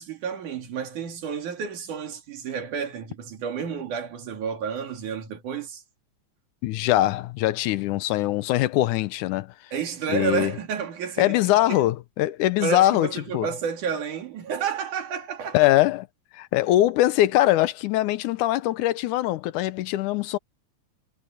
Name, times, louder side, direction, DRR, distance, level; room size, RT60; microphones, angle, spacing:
voice 1, 0.0-5.8 9.7-11.9 12.6-15.7, right 7 dB, 75° right, 3.9 m, -31 dB
voice 2, 6.6-9.5 10.1-10.5 11.2-13.1 13.3-13.5 15.5-16.1 16.3-20.4, left 15 dB, 80° left, 2.2 m, -22 dB
omnidirectional pair, 3.6 m